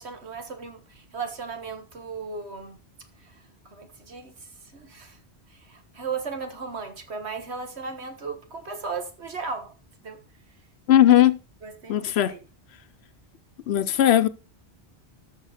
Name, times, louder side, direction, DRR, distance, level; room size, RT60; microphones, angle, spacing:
voice 1, 0.0-2.8 3.2-5.2 5.5-9.7 10.0-10.2 11.6-12.4, right 5 dB, 85° right, 1.9 m, -36 dB
voice 2, 10.9-11.4 11.9-12.4 13.7-14.3, left 11 dB, 80° left, 0.9 m, -18 dB
14.0 x 5.7 x 4.2 m
omnidirectional pair, 1.1 m